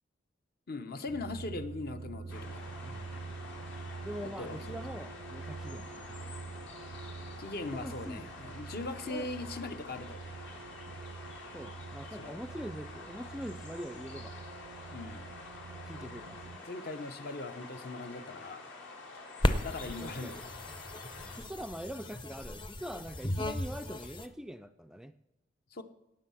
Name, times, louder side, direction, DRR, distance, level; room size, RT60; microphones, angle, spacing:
voice 1, 0.7-2.7 4.2-4.8 7.4-10.2 12.2-12.4 14.9-15.3 16.0-16.2 16.6-18.8 19.6-20.5 25.7-25.8, left 2 dB, 55° left, 9 dB, 0.9 m, -40 dB
sound 1, 1.1-16.6, right 4 dB, 70° right, 0.5 m, -46 dB
sound 2, 2.3-21.4, left 3 dB, 70° left, 2.9 m, -48 dB
voice 2, 4.0-6.2 7.7-8.4 9.1-9.3 10.9-11.0 11.5-14.4 15.8-16.7 19.9-20.4 21.4-25.1, equal, 5° right, 9 dB, 0.3 m, -43 dB
sound 3, 19.4-24.3, left 1 dB, 25° left, 0.7 m, -35 dB
17.5 x 6.3 x 5.6 m, 0.94 s
head